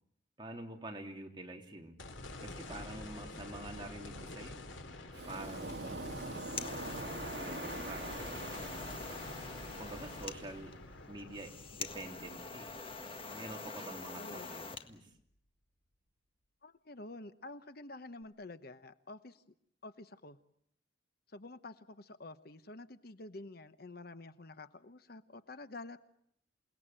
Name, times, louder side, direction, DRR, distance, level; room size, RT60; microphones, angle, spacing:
voice 1, 0.4-2.0 2.4-4.6 5.3-6.1 7.4-8.5 9.8-10.7 11.1-12.7 13.3-15.1, right 2 dB, 25° right, 2 dB, 3.3 m, -47 dB
sound 1, 2.0-14.3 14.8-14.9 18.2-18.3, left 2 dB, 80° left, 3.0 m, -48 dB
Waves surf, 5.1-10.6, right 2 dB, 55° right, 2.5 m, -44 dB
sound 2, 6.1-14.9, left 4 dB, 30° left, 1.7 m, -45 dB
voice 2, 14.2-14.5 16.6-19.4 19.8-20.4 21.3-26.0, left 2 dB, 50° left, 11 dB, 1.0 m, -49 dB
28.5 x 19.5 x 9.0 m, 0.71 s
head